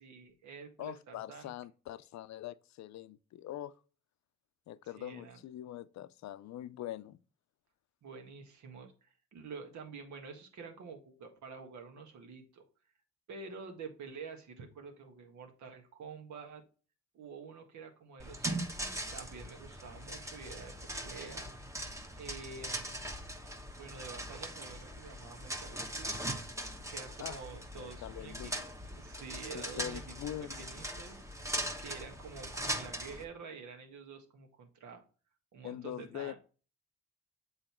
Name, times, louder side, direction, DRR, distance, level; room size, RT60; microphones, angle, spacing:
voice 1, 0.0-1.5 5.0-5.4 8.0-12.6 13.3-16.6 17.1-21.5 22.2-23.0 23.8-26.1 26.9-28.5 28.9-30.0 30.6-35.0 35.5-36.4, right 5 dB, 70° right, 1.7 m, -48 dB
voice 2, 0.8-3.7 4.7-7.2 27.2-27.4 27.8-28.7 29.5-30.7 35.6-36.3, left 12 dB, 65° left, 0.5 m, -43 dB
sound 1, 18.2-33.2, right 1 dB, 10° right, 1.2 m, -40 dB
7.7 x 4.0 x 4.4 m
cardioid pair, 90°, 30 cm